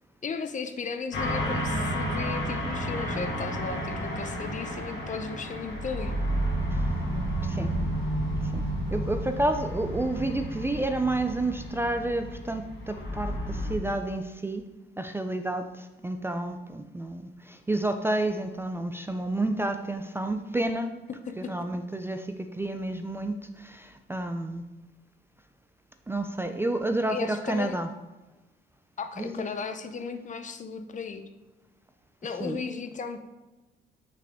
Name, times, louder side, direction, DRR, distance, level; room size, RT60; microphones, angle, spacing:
voice 1, 0.2-6.2 20.8-21.0 21.3-21.5 27.1-27.8 29.0-31.3 32.2-33.2, left 5 dB, 40° left, 8 dB, 0.6 m, -35 dB
sound 1, 1.1-13.7, equal, 65° left, 1.6 m, -31 dB
voice 2, 7.4-7.8 8.4-14.7 15.0-20.9 21.4-24.6 26.1-27.9 29.2-29.5 32.4-32.6, right 2 dB, 10° right, 7 dB, 0.4 m, -30 dB
5.9 x 4.7 x 3.5 m, 1.1 s
cardioid pair, 90°, 20 cm